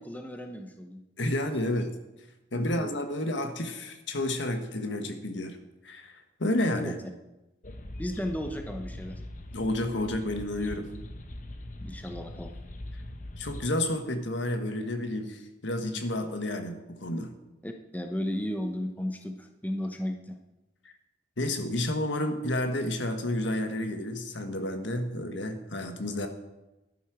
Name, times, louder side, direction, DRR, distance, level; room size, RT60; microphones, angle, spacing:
voice 1, 0.0-1.0 2.5-2.9 6.7-7.0 8.0-9.2 11.8-12.5 17.6-20.4, equal, 10° left, 5 dB, 0.8 m, -34 dB
voice 2, 1.2-1.9 2.5-5.6 5.8-7.0 9.5-10.9 13.4-17.3 21.4-26.3, left 1 dB, 80° left, 6 dB, 1.5 m, -30 dB
sound 1, 7.6-13.6, left 1 dB, 45° left, 1.0 m, -41 dB
13.5 x 11.5 x 4.9 m, 1.0 s
head